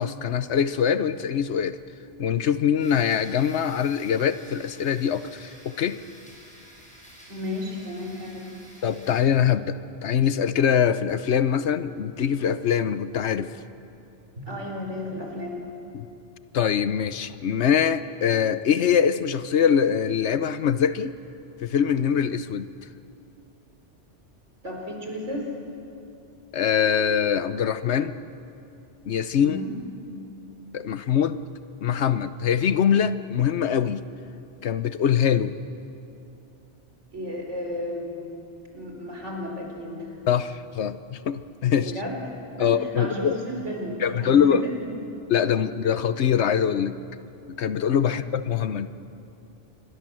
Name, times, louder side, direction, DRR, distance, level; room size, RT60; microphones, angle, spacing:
voice 1, 0.0-1.8 2.2-6.0 8.8-13.5 15.9-16.1 16.5-21.2 21.6-22.7 26.5-28.2 29.1-29.6 30.7-31.4 31.8-34.0 34.6-35.5 40.3-41.9 42.6-43.4 44.0-44.6 45.3-47.0 47.6-48.9, left 8 dB, 70° left, 13 dB, 1.1 m, -23 dB
sound 1, 2.8-9.2, equal, 5° left, 5.4 m, -50 dB
voice 2, 7.3-8.6 14.4-15.6 24.6-25.5 29.4-29.7 37.1-38.4 38.7-40.1 41.8-42.2 42.6-44.9, left 1 dB, 80° right, 1 dB, 4.7 m, -33 dB
27.5 x 22.5 x 7.6 m, 2.7 s
omnidirectional pair, 1.2 m